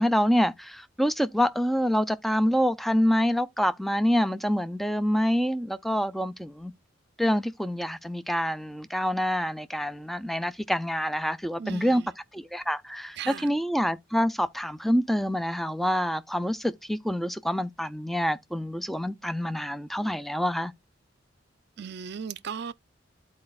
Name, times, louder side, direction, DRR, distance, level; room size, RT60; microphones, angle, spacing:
voice 1, 0.0-6.7 7.2-12.0 12.3-20.7, equal, ahead, 0.4 m, -26 dB
voice 2, 11.6-12.1 13.2-13.5 21.8-22.7, right 7 dB, 60° right, 0.5 m, -36 dB
12.5 x 4.3 x 2.3 m
head